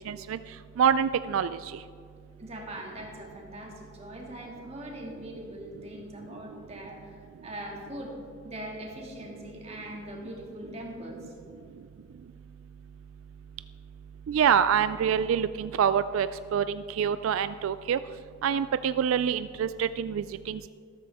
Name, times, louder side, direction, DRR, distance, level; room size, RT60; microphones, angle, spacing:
voice 1, 0.1-0.4 0.8-1.8 14.3-18.0 18.4-20.7, right 8 dB, 85° right, 13 dB, 0.3 m, -26 dB
voice 2, 2.4-8.2 8.4-11.3, right 1 dB, 30° right, -1 dB, 2.2 m, -41 dB
13.5 x 13.0 x 3.5 m, 2.3 s
head